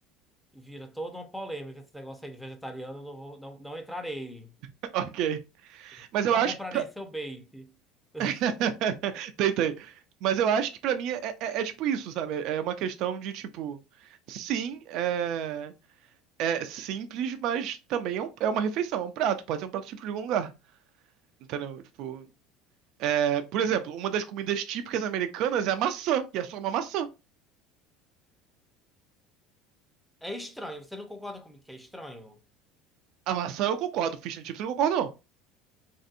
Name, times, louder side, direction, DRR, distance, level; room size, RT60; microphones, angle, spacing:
voice 1, 0.5-4.5 6.3-7.7 8.1-8.3 30.2-32.4, equal, ahead, 0.7 m, -39 dB
voice 2, 4.9-5.4 5.7-6.8 8.2-9.9 10.2-13.8 14.3-15.7 16.4-20.5 21.5-22.2 23.0-27.1 33.3-35.1, right 9 dB, 60° right, 0.4 m, -29 dB
3.1 x 2.6 x 2.5 m
supercardioid pair, 105°, 0 cm